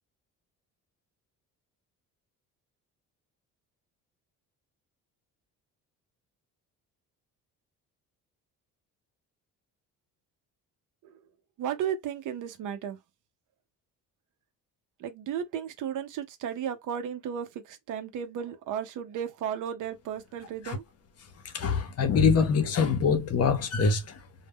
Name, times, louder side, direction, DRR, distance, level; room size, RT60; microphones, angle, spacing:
voice 1, 11.6-13.0 15.0-20.8, right 8 dB, 65° right, 0.6 m, -34 dB
voice 2, 21.5-24.2, left 5 dB, 45° left, 0.7 m, -24 dB
2.1 x 2.1 x 3.5 m
cardioid pair, 100°, 33 cm